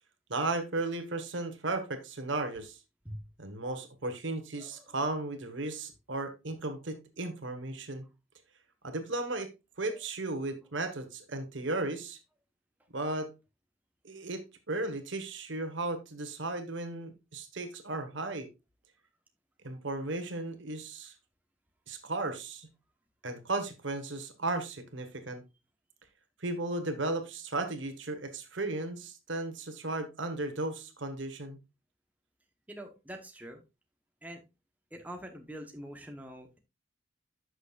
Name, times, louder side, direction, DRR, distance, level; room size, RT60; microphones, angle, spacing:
voice 1, 0.3-2.8 3.4-8.0 8.8-9.5 9.8-12.2 12.9-13.3 14.0-18.5 19.6-21.1 21.9-22.7 23.2-25.4 26.4-31.6, right 2 dB, 65° right, 8 dB, 1.4 m, -35 dB
voice 2, 4.6-4.9 32.7-33.6 34.2-34.4 34.9-36.6, equal, 10° right, 3 dB, 1.0 m, -44 dB
11.0 x 6.4 x 2.5 m, 0.25 s
head